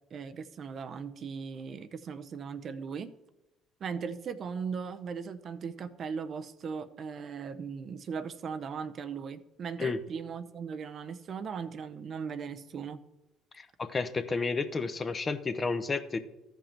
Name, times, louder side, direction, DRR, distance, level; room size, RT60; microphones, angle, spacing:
voice 1, 0.1-3.1 3.8-13.0, right 6 dB, 50° right, 11 dB, 0.6 m, -38 dB
voice 2, 13.6-16.2, left 4 dB, 30° left, 11 dB, 0.8 m, -31 dB
13.5 x 5.3 x 4.5 m, 0.97 s
hypercardioid pair, 65°, 0 cm